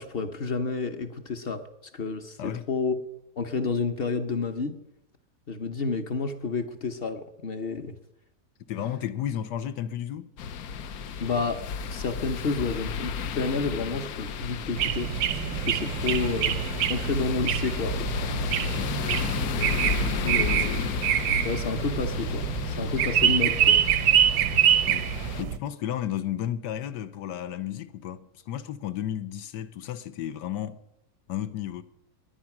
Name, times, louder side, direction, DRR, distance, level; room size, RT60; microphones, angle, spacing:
voice 1, 0.0-1.6 1.9-3.0 3.4-4.8 5.5-8.0 11.2-11.6 11.9-16.6 16.9-18.1 19.6-20.7 21.4-23.8, left 4 dB, 45° left, 0.9 m, -30 dB
voice 2, 8.7-10.3 18.8-19.0 20.2-21.0 24.3-24.5 24.8-25.1 25.4-30.8 31.3-31.8, left 11 dB, 85° left, 1.5 m, -33 dB
sound 1, 10.4-25.4, left 6 dB, 65° left, 1.2 m, -33 dB
sound 2, 14.8-25.6, right 10 dB, 85° right, 1.3 m, -25 dB
20.0 x 9.7 x 6.0 m
omnidirectional pair, 1.8 m